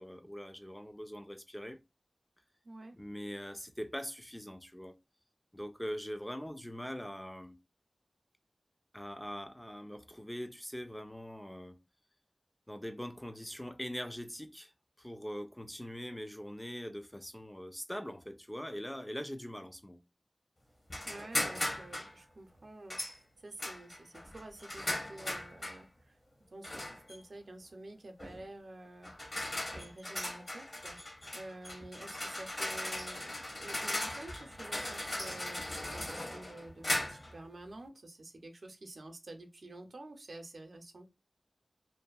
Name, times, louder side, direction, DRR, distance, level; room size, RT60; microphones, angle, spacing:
voice 1, 0.0-1.8 2.9-5.0 5.5-7.6 8.9-11.8 12.7-14.7 15.0-20.0, equal, 10° left, 0.4 m, -42 dB
voice 2, 2.6-3.0 21.0-26.2 26.5-29.1 29.7-31.0 31.3-41.1, right 2 dB, 75° right, 0.6 m, -49 dB
sound 1, 20.9-22.1 22.9-23.2 23.6-25.8 26.6-27.2 28.2-28.4 29.0-37.4, left 1 dB, 50° left, 0.9 m, -38 dB
2.6 x 2.5 x 2.3 m
wide cardioid pair, 75°, 0 cm